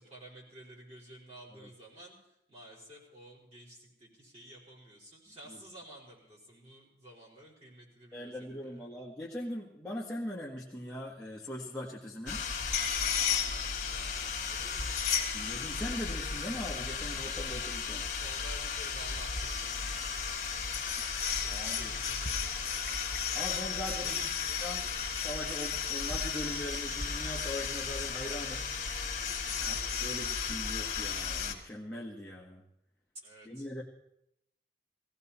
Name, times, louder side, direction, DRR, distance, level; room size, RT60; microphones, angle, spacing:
voice 1, 0.0-8.9 13.3-14.9 18.2-23.0 24.0-24.6 29.5-29.8 33.2-33.7, right 1 dB, 35° right, -5 dB, 4.6 m, -53 dB
voice 2, 8.1-12.4 15.3-18.1 21.5-21.9 23.3-24.3 24.6-24.8 25.2-28.7 29.6-32.6 33.5-33.8, left 1 dB, 5° left, -6 dB, 1.7 m, -40 dB
sound 1, 12.3-31.5, left 6 dB, 45° left, 2.0 m, -34 dB
sound 2, 19.5-26.9, right 1 dB, 65° right, 5.5 m, -59 dB
18.5 x 16.5 x 4.3 m, 0.81 s
head